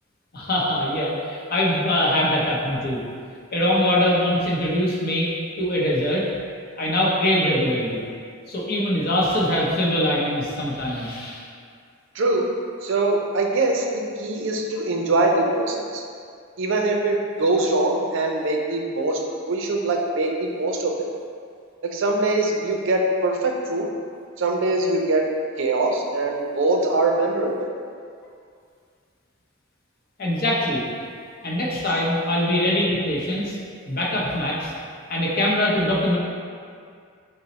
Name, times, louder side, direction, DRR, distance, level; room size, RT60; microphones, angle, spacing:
voice 1, 0.3-3.0 3.5-5.3 5.6-6.3 6.8-8.0 8.5-11.4 30.2-30.8 31.4-33.5 33.9-34.7 35.1-36.2, left 1 dB, 45° left, -4 dB, 0.6 m, -22 dB
voice 2, 12.1-12.5 12.8-16.0 16.6-19.2 19.5-21.1 21.8-23.9 24.4-25.2 25.6-27.7, right 2 dB, 60° right, 1 dB, 0.4 m, -23 dB
3.9 x 2.0 x 4.0 m, 2.2 s
head